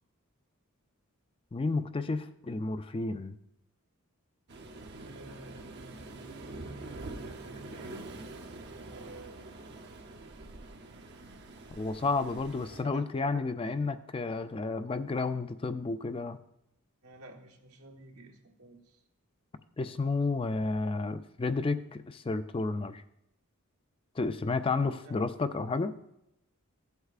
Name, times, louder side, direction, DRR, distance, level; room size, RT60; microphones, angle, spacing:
voice 1, 1.5-3.3 11.8-16.4 19.8-23.0 24.2-25.9, left 3 dB, 25° left, 11 dB, 0.3 m, -31 dB
Waves surf, 4.5-12.8, right 2 dB, 50° right, 0.7 m, -45 dB
voice 2, 5.0-9.4 12.7-13.0 13.3-13.7 17.0-19.0 25.0-25.2, right 2 dB, 85° right, 0 dB, 1.3 m, -52 dB
15.5 x 8.0 x 2.4 m, 0.83 s
head